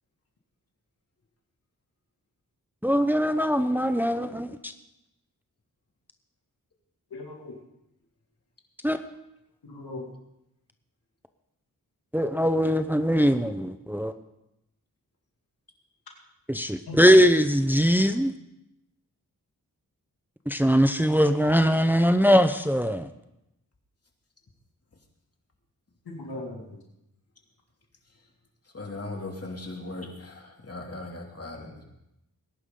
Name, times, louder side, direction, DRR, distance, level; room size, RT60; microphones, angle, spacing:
voice 1, 2.8-4.7 8.8-9.0 12.1-14.1 16.5-18.3 20.5-23.1, equal, 5° right, 0.8 m, -21 dB
voice 2, 7.1-7.5 9.6-10.1 16.9-17.0 26.1-26.6, left 2 dB, 90° left, 2.6 m, -38 dB
voice 3, 28.7-31.8, left 2 dB, 40° left, 2.8 m, -38 dB
19.5 x 11.0 x 3.9 m
cardioid pair, 45°, 36 cm